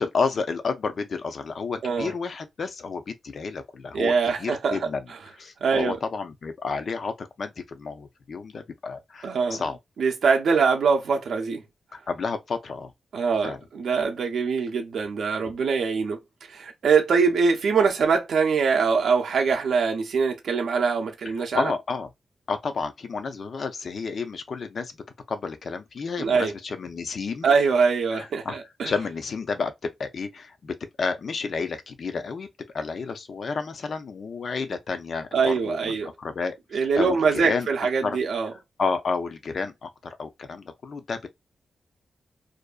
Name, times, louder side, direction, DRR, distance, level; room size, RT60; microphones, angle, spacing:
voice 1, 0.0-4.1 4.4-5.1 5.4-9.8 11.9-12.9 13.4-13.6 15.4-15.6 21.2-22.1 22.5-24.9 25.3-27.5 28.1-28.6 28.8-32.5 32.7-37.7 38.0-38.2 38.8-41.3, left 4 dB, 55° left, 0.5 m, -31 dB
voice 2, 3.9-4.8 5.6-6.0 9.2-9.6 10.0-11.6 13.1-16.2 16.5-21.7 26.2-26.5 27.4-28.9 35.3-36.1 36.7-38.5, right 5 dB, 75° right, 0.5 m, -23 dB
2.5 x 2.3 x 2.3 m
wide cardioid pair, 135°, 0 cm